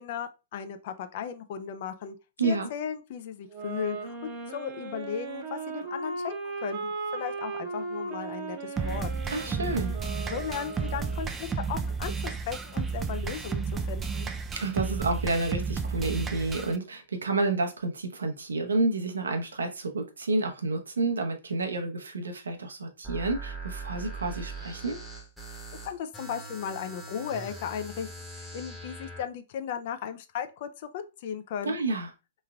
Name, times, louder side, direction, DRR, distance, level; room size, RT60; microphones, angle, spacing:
voice 1, 0.0-2.2 2.4-9.1 10.3-14.3 25.8-28.1 28.4-31.8, left 8 dB, 50° left, 0.5 m, -36 dB
voice 2, 2.4-2.7 9.3-9.9 14.5-25.0 31.7-32.1, right 3 dB, 75° right, 0.7 m, -29 dB
sound 1, 3.5-11.3, right 3 dB, 35° right, 0.8 m, -37 dB
sound 2, 8.8-16.8, right 5 dB, 20° right, 0.3 m, -32 dB
sound 3, 23.0-29.2, right 3 dB, ahead, 0.9 m, -41 dB
3.7 x 3.1 x 2.3 m
figure-of-eight pair, 105°, 0 cm